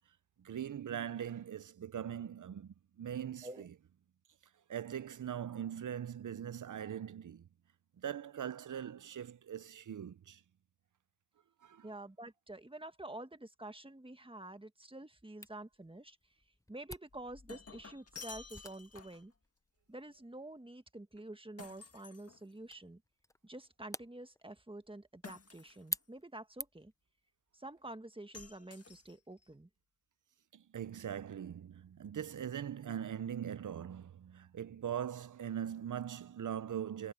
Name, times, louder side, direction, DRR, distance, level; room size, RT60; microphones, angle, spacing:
voice 1, 0.4-3.7 4.7-7.5 8.0-10.4 11.6-11.9 30.5-37.1, right 9 dB, 70° right, 0.6 m, -41 dB
voice 2, 11.8-16.2 16.7-19.3 19.9-23.0 23.4-26.9 27.5-29.7, right 1 dB, 15° right, 1.6 m, -48 dB
Camera, 15.4-27.0, left 1 dB, 10° left, 0.8 m, -50 dB
Shatter, 17.1-19.3 21.6-22.9 25.2-26.0 28.3-29.4, left 4 dB, 45° left, 1.9 m, -52 dB
cardioid pair, 40°, 33 cm